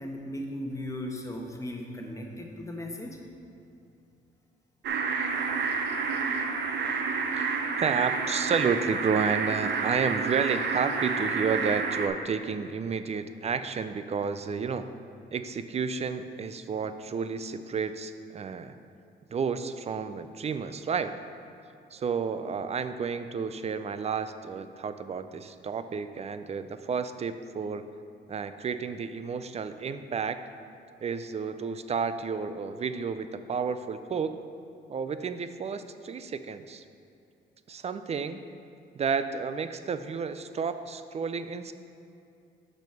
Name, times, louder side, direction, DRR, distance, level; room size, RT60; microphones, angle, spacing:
voice 1, 0.0-3.2, left 1 dB, 15° left, 0 dB, 1.1 m, -37 dB
sound 1, 4.8-12.1, right 5 dB, 60° right, 0.7 m, -29 dB
voice 2, 7.8-14.9 15.3-18.8 19.3-21.1 21.9-27.8 28.3-30.4 31.0-34.3 34.9-36.8 37.7-38.4 39.0-41.7, right 5 dB, 35° right, 11 dB, 0.4 m, -31 dB
6.2 x 5.3 x 5.7 m, 2.6 s
cardioid pair, 90°, 20 cm